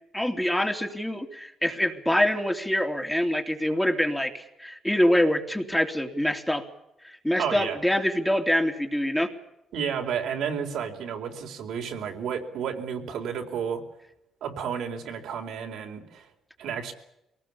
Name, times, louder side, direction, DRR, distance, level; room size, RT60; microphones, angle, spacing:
voice 1, 0.1-6.6 7.0-9.3, left 1 dB, 5° left, 4 dB, 2.9 m, -25 dB
voice 2, 7.4-7.8 9.7-13.8 14.4-16.3 16.6-16.9, right 7 dB, 80° right, 3 dB, 4.2 m, -31 dB
23.0 x 19.0 x 8.6 m, 0.85 s
cardioid pair, 90°, 0 cm